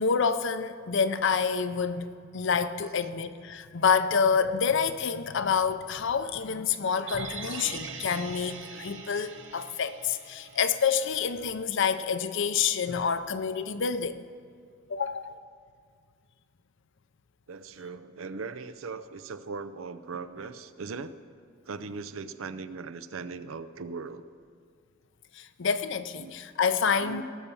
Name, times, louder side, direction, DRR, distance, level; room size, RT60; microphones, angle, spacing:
voice 1, 0.0-2.1 2.3-14.2 14.9-15.4 25.3-27.2, left 6 dB, 65° left, 12 dB, 0.6 m, -27 dB
sound 1, 7.1-11.3 11.6-11.7, right 4 dB, 65° right, 1.1 m, -42 dB
voice 2, 17.5-21.2 21.7-24.2 26.2-26.4 27.0-27.2, right 4 dB, 90° right, 12 dB, 0.6 m, -39 dB
18.0 x 7.1 x 7.0 m, 2.1 s
head